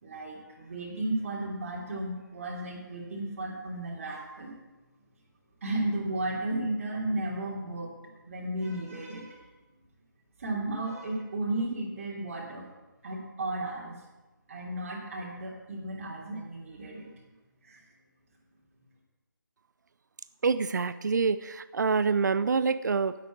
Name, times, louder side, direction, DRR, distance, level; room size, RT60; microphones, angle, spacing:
voice 1, 0.0-4.5 5.6-9.4 10.4-12.6 13.0-14.0 14.5-17.4 17.6-17.8, right 1 dB, 40° right, -4 dB, 3.0 m, -34 dB
voice 2, 20.4-23.2, right 5 dB, 55° right, 14 dB, 0.6 m, -26 dB
9.8 x 8.3 x 8.5 m, 1.1 s
figure-of-eight pair, 160°, 11 cm